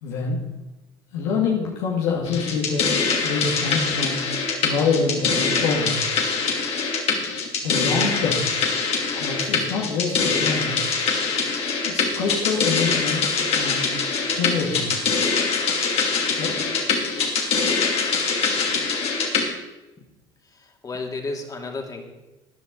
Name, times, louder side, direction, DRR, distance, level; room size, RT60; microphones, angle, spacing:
voice 1, 0.0-0.4 1.1-2.9 3.2-4.2 4.6-6.0 7.6-8.5 9.2-10.7 11.8-13.8 14.3-14.9 16.3-16.6, left 4 dB, 80° left, -3 dB, 2.3 m, -26 dB
sound 1, 2.3-19.5, left 5 dB, 55° left, 2.6 m, -23 dB
voice 2, 20.6-22.1, left 3 dB, 30° left, 2 dB, 2.6 m, -32 dB
14.0 x 10.0 x 4.0 m, 1.0 s
supercardioid pair, 80°, 13 cm